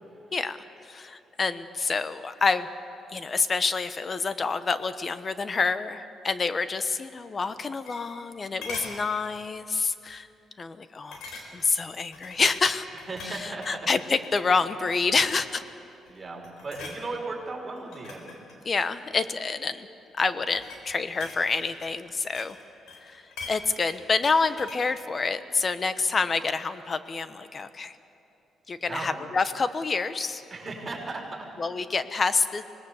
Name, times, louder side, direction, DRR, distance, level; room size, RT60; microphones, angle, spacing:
voice 1, 0.8-2.7 3.1-10.3 10.6-11.2 11.5-12.9 13.2-15.6 18.6-19.9 20.2-22.6 23.0-28.0 28.7-30.4 31.6-32.6, left 4 dB, 35° left, 12 dB, 1.0 m, -27 dB
sound 1, 7.5-8.3 8.6-9.0 9.5-9.8 10.1-10.2 11.1-11.8 12.1-13.8 14.2-14.5 14.9-15.4 15.9-16.2 16.4-17.0 17.8-19.4 20.2-22.6 22.9-24.9 25.2-25.3, left 3 dB, 85° left, 4.2 m, -43 dB
voice 2, 13.1-13.8 16.1-18.4 28.8-29.2 30.5-31.5, right 3 dB, 30° right, -2 dB, 5.5 m, -36 dB
25.0 x 19.5 x 7.2 m, 2.8 s
cardioid pair, 90°, 0 cm